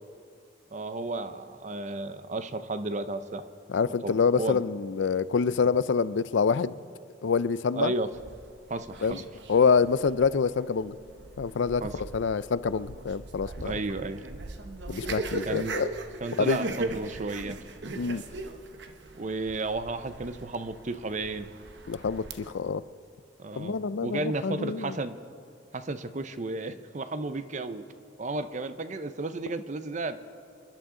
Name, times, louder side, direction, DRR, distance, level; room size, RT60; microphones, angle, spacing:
voice 1, 0.7-3.4 3.9-4.6 7.7-8.1 8.7-9.2 11.8-12.0 13.6-14.2 15.5-15.7 16.2-17.6 19.1-21.5 23.4-25.2 25.7-27.9 28.2-30.2, right 2 dB, 40° right, 11 dB, 0.6 m, -33 dB
voice 2, 3.7-6.8 7.2-7.9 9.0-9.2 9.5-11.0 11.4-13.7 14.9-15.9 16.4-16.6 18.0-18.2 21.9-22.8 23.5-24.9, left 5 dB, 70° left, 16 dB, 0.4 m, -26 dB
sound 1, 8.1-22.5, right 2 dB, 65° right, 0.9 m, -39 dB
28.5 x 11.5 x 3.8 m, 2.4 s
head